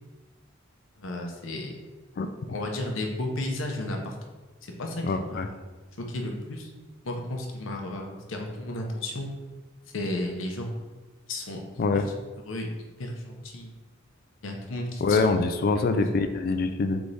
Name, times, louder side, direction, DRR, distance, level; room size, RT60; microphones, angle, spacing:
voice 1, 1.0-1.8 2.5-4.2 4.6-5.5 6.1-6.7 7.0-9.3 9.9-10.7 11.3-12.1 12.4-12.7 13.0-13.7 14.4-15.2, left 1 dB, 75° left, 2 dB, 0.7 m, -33 dB
voice 2, 5.0-5.5 11.8-12.1 15.0-17.0, left 3 dB, 50° left, 7 dB, 0.3 m, -24 dB
3.4 x 3.2 x 3.9 m, 1.2 s
head